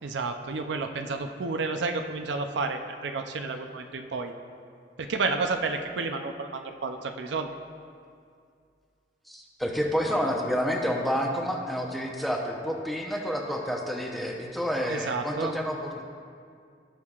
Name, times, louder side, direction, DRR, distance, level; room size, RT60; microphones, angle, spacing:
voice 1, 0.0-4.3 5.0-7.5 14.9-15.5, right 3 dB, 70° right, 6 dB, 0.5 m, -31 dB
voice 2, 9.3-16.0, equal, ahead, 0 dB, 0.8 m, -29 dB
17.5 x 6.4 x 2.4 m, 2.3 s
head